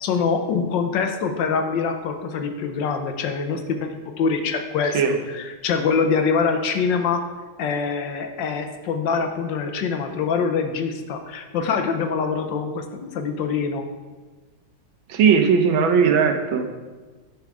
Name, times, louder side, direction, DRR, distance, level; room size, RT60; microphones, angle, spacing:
voice 1, 0.0-5.0 5.3-7.2 7.6-13.8, left 5 dB, 70° left, 6 dB, 1.4 m, -24 dB
voice 2, 15.1-16.7, right 6 dB, 90° right, 6 dB, 1.6 m, -18 dB
11.0 x 4.8 x 4.8 m, 1.3 s
omnidirectional pair, 2.1 m